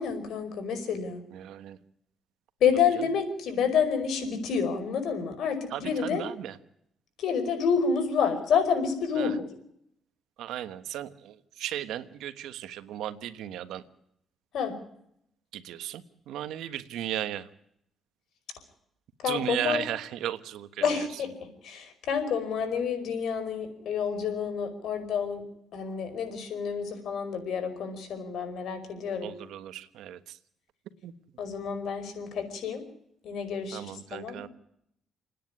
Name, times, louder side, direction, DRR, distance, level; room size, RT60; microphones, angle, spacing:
voice 1, 0.0-1.2 2.6-6.2 7.2-9.5 14.5-14.7 19.2-19.9 20.8-21.3 21.6-25.4 25.7-29.3 31.4-32.8 33.2-34.5, left 6 dB, 75° left, 7 dB, 5.2 m, -29 dB
voice 2, 1.3-1.8 5.7-6.5 9.2-9.3 10.4-11.1 11.6-13.8 15.5-16.0 16.3-17.4 19.2-20.7 29.2-30.2 31.0-31.1 33.7-34.5, right 11 dB, 85° right, 11 dB, 1.3 m, -35 dB
28.5 x 10.0 x 9.8 m, 0.72 s
cardioid pair, 90°, 0 cm